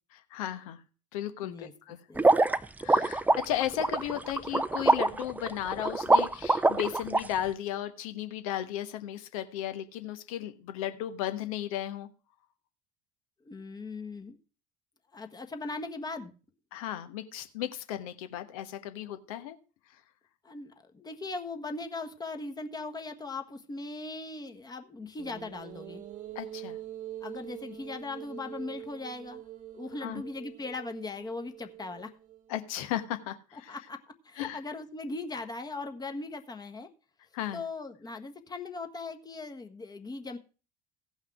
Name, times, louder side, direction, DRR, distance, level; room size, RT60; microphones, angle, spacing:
voice 1, 0.1-0.8 1.1-2.0 2.8-12.1 16.7-19.6 26.3-26.8 30.0-30.2 32.5-33.8 34.4-34.6 37.3-37.6, left 11 dB, 65° left, 10 dB, 1.1 m, -35 dB
sound 1, 2.2-7.2, right 2 dB, 10° right, 0.6 m, -24 dB
voice 2, 13.4-14.4 15.1-16.3 20.4-26.0 27.2-29.4 29.7-32.1 33.7-36.9 37.5-40.4, left 3 dB, 20° left, 6 dB, 1.4 m, -39 dB
sound 2, 25.2-32.6, right 12 dB, 40° right, 1.1 m, -45 dB
16.5 x 5.6 x 4.7 m, 0.36 s
figure-of-eight pair, 65°, 19 cm